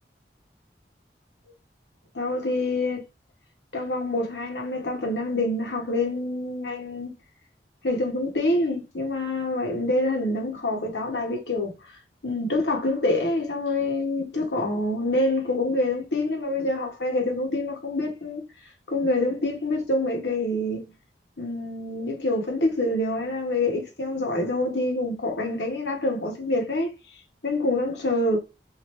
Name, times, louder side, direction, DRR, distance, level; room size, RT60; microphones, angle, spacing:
voice 1, 2.1-3.0 3.7-7.1 7.8-11.7 12.2-18.5 18.9-20.9 21.4-26.9 27.4-28.4, left 2 dB, 80° left, 1.1 m, -26 dB
3.1 x 2.8 x 2.9 m
head